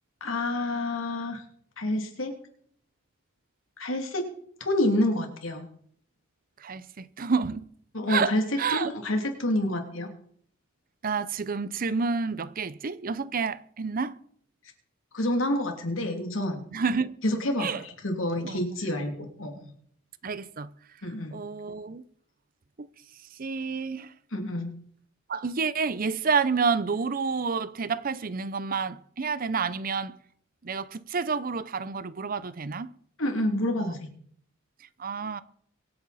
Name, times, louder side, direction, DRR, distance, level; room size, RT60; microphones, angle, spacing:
voice 1, 0.2-1.4 1.8-2.3 3.8-4.2 4.6-5.7 7.9-8.4 8.7-10.1 15.1-16.6 17.2-19.7 21.0-21.4 24.3-24.7 33.2-34.1, left 1 dB, 70° left, 2.8 m, -28 dB
voice 2, 6.6-7.7 8.1-8.9 11.0-14.1 16.7-17.1 17.6-17.8 18.4-18.6 20.2-20.7 21.3-22.0 22.8-22.9 23.4-24.1 25.3-30.2 30.6-32.9 33.8-33.9 35.0-35.4, right 5 dB, 45° right, 0.6 m, -29 dB
24.5 x 8.6 x 4.2 m
head